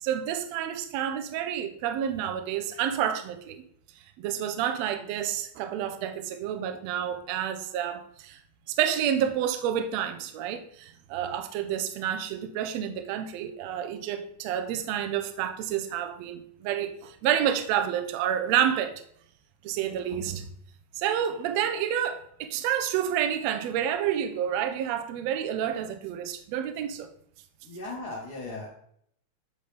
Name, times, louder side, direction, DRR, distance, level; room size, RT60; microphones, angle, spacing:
voice 1, 0.0-3.6 4.2-8.4 8.7-19.0 19.6-20.5 21.0-27.1, right 9 dB, 75° right, 6 dB, 1.7 m, -29 dB
voice 2, 27.6-28.7, left 2 dB, 40° left, -3 dB, 1.6 m, -37 dB
9.3 x 3.9 x 3.4 m, 0.68 s
omnidirectional pair, 3.4 m